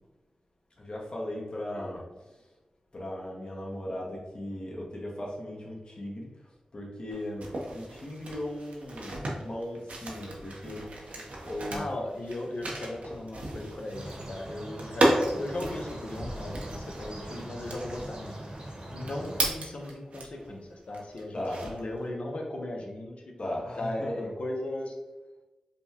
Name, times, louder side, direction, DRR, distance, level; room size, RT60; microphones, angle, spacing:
voice 1, 0.8-2.1 2.9-6.3 6.7-11.9 21.3-21.6 23.4-24.3, left 1 dB, 45° left, -3 dB, 1.0 m, -37 dB
sound 1, 7.1-20.5 20.9-22.0, right 1 dB, 85° right, 0.8 m, -34 dB
voice 2, 11.7-18.4 18.9-23.2 23.8-25.0, left 1 dB, 65° left, 0 dB, 0.8 m, -37 dB
sound 2, 13.9-19.5, right 1 dB, 50° right, 1.0 m, -42 dB
5.2 x 2.3 x 2.8 m, 1.1 s
wide cardioid pair, 65°, 2 cm